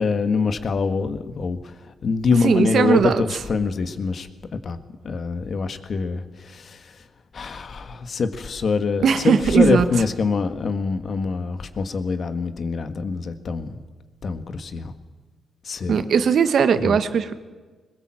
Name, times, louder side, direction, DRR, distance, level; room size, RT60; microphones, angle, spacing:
voice 1, 0.0-4.8 5.0-7.0 7.3-13.8 14.2-14.9 15.6-16.0 16.8-17.0, left 4 dB, 55° left, 9 dB, 1.7 m, -25 dB
voice 2, 2.4-3.2 9.0-9.9 15.9-17.3, right 6 dB, 65° right, 11 dB, 1.4 m, -18 dB
21.5 x 21.0 x 7.7 m, 1.4 s
cardioid pair, 90°, 0 cm